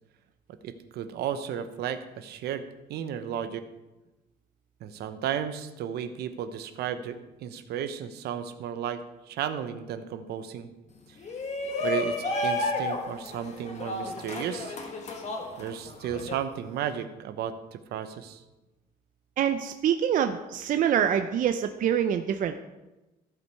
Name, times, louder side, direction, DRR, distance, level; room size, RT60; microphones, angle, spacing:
voice 1, 0.6-2.6 2.9-3.6 4.8-9.0 9.3-10.7 11.8-12.1 12.4-14.8 15.6-18.4, right 9 dB, 75° right, 10 dB, 0.8 m, -34 dB
Shout, 11.2-16.3, left 2 dB, 40° left, 1.5 m, -31 dB
voice 2, 19.4-22.6, right 9 dB, 50° right, 8 dB, 0.5 m, -25 dB
15.0 x 5.3 x 4.7 m, 1.0 s
cardioid pair, 110°, 17 cm